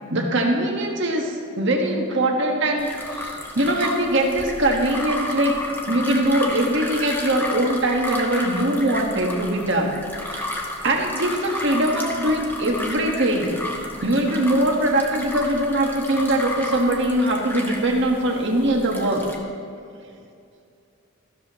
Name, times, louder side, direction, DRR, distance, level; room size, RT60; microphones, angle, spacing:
voice 1, 0.1-5.6 5.9-10.0 10.3-13.6 14.0-19.3, right 1 dB, 55° right, 1 dB, 1.6 m, -22 dB
sound 1, 2.8-19.4, left 1 dB, 10° left, 1.0 m, -32 dB
14.0 x 13.0 x 3.1 m, 2.4 s
head